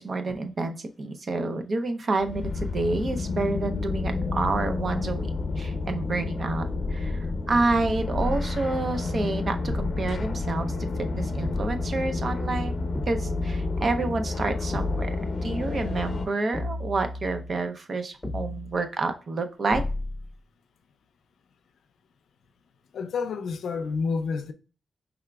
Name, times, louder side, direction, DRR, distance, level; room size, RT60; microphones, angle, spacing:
voice 1, 0.0-10.7 11.0-15.2 15.4-19.8, right 3 dB, 45° right, 0.6 m, -29 dB
sound 1, 2.2-16.3, left 3 dB, 55° left, 0.7 m, -30 dB
sound 2, 6.7-7.5 8.1-8.7 9.7-10.7 11.4-12.0 12.9-14.0 14.7-15.3 16.5-17.7 18.2-18.9 19.7-20.3, left 2 dB, 10° left, 0.6 m, -33 dB
voice 2, 22.9-24.5, left 5 dB, 85° left, 0.5 m, -29 dB
4.9 x 3.5 x 2.3 m
wide cardioid pair, 110°, 0 cm